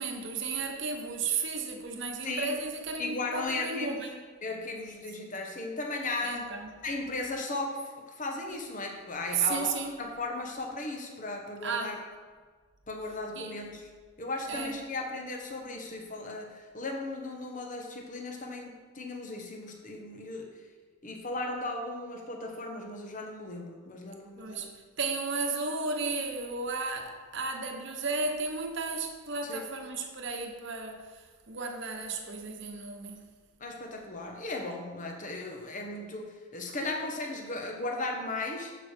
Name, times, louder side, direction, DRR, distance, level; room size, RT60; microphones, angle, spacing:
voice 1, 0.0-4.1 6.2-6.7 9.3-9.9 11.6-11.9 13.4-13.5 14.5-14.7 24.4-24.7 25.0-31.1 31.5-33.3, right 4 dB, 55° right, 3 dB, 1.0 m, -33 dB
voice 2, 3.0-4.0 4.4-6.5 6.8-12.0 12.9-13.9 14.2-20.5 21.0-24.7 29.4-29.6 33.6-38.7, left 2 dB, 35° left, 1 dB, 1.1 m, -36 dB
11.5 x 5.1 x 4.4 m, 1.5 s
head